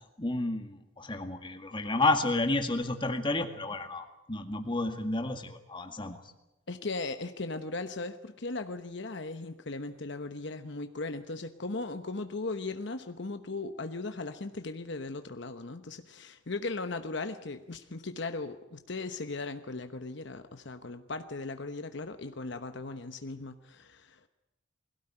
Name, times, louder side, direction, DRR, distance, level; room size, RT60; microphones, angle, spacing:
voice 1, 0.2-6.2, left 2 dB, 25° left, 6 dB, 2.0 m, -31 dB
voice 2, 6.7-24.3, left 3 dB, 65° left, 8 dB, 1.1 m, -38 dB
21.5 x 17.0 x 10.0 m, 0.95 s
head